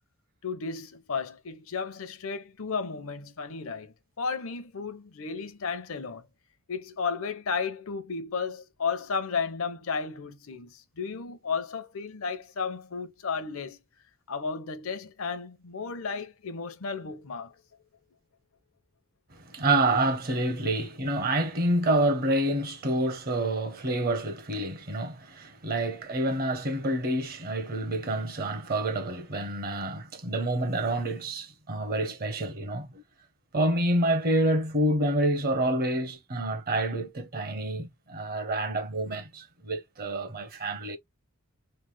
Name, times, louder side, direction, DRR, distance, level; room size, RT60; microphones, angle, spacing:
voice 1, 0.4-6.3 6.7-13.8 14.3-17.5, left 5 dB, 65° left, 0.6 m, -33 dB
voice 2, 19.5-33.0 33.5-41.0, right 1 dB, 45° right, 0.8 m, -28 dB
3.2 x 2.0 x 3.2 m
head